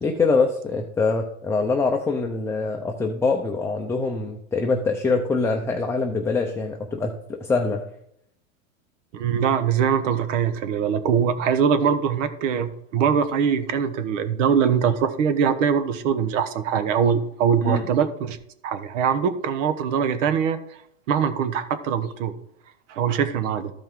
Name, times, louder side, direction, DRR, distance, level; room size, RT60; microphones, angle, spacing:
voice 1, 0.0-7.8 17.6-17.9, left 4 dB, 5° left, 2 dB, 0.5 m, -24 dB
voice 2, 9.1-18.4 18.6-20.6 21.1-22.3 22.9-23.7, right 7 dB, 70° right, 11 dB, 1.2 m, -22 dB
13.5 x 5.3 x 3.8 m, 0.73 s
supercardioid pair, 135°, 40 cm